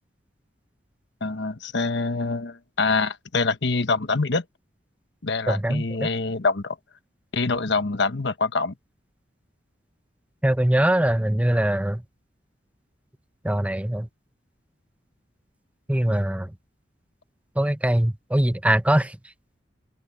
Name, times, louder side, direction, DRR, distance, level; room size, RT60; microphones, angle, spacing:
voice 1, 1.2-4.4 5.2-6.8 7.3-8.7 16.1-16.2, left 3 dB, 70° left, 1.2 m, -25 dB
voice 2, 5.5-6.1 10.4-12.0 13.4-14.1 15.9-16.5 17.6-19.2, right 1 dB, 10° right, 0.8 m, -22 dB
head